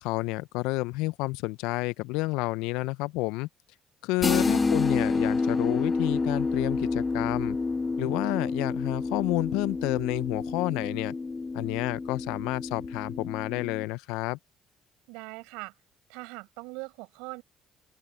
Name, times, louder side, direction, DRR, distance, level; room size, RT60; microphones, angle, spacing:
voice 1, 0.0-3.5 4.0-7.6 8.0-11.1 11.5-14.4, left 22 dB, 75° left, 1.0 m, -30 dB
sound 1, 4.2-13.8, left 3 dB, 30° left, 0.4 m, -29 dB
voice 2, 15.1-15.7 16.1-17.4, right 28 dB, 75° right, 7.2 m, -41 dB
open air
hypercardioid pair, 50°, 0 cm